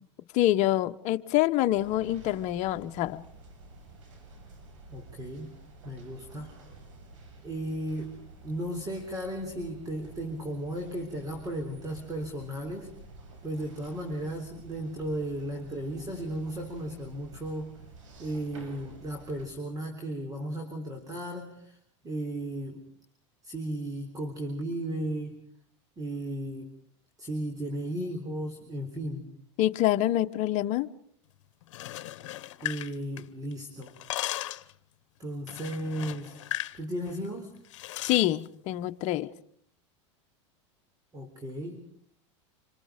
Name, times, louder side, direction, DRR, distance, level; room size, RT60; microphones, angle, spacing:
voice 1, 0.3-3.2 29.6-30.9 38.1-39.3, left 14 dB, 50° left, 1.1 m, -26 dB
sound 1, 1.7-19.4, right 2 dB, 85° right, 7.3 m, -50 dB
voice 2, 4.9-5.6 5.8-6.5 7.4-8.2 8.4-12.9 13.4-17.8 18.2-21.8 22.0-22.8 23.4-25.4 26.0-26.7 27.2-29.3 32.6-33.9 35.2-36.4 36.7-37.6 41.1-41.8, right 1 dB, 25° right, 3.8 m, -35 dB
sound 2, 31.6-33.5 33.8-34.7 35.5-36.8 37.1-37.3 37.7-38.2, left 15 dB, 75° left, 1.0 m, -36 dB
27.0 x 25.0 x 5.2 m
supercardioid pair, 120°, 16 cm